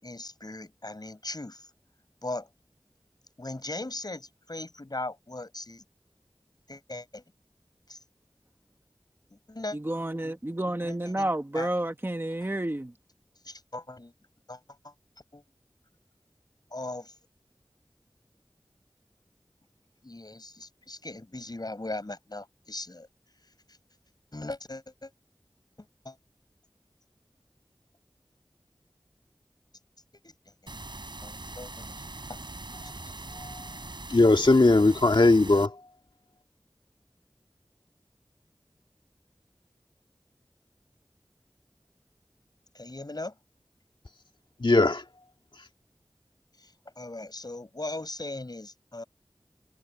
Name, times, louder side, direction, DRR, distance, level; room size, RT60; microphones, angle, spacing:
voice 1, 0.0-1.7 2.2-2.5 3.4-5.8 6.7-7.2 7.9-8.0 9.5-9.8 10.2-10.3 10.8-11.7 12.4-12.5 13.4-14.1 14.5-14.6 14.8-14.9 15.3-15.4 16.7-17.1 20.0-23.1 24.3-25.1 26.1-26.2 30.2-30.3 31.2-32.4 42.7-43.3 46.6-46.7 47.0-49.0, left 2 dB, 50° left, 7.3 m, -39 dB
voice 2, 9.7-12.9, right 1 dB, 25° right, 1.2 m, -30 dB
sound 1, 30.7-35.7, right 2 dB, 65° right, 7.7 m, -41 dB
voice 3, 34.1-35.7 44.6-45.0, left 2 dB, 70° left, 2.2 m, -20 dB
wide cardioid pair, 50°, 8 cm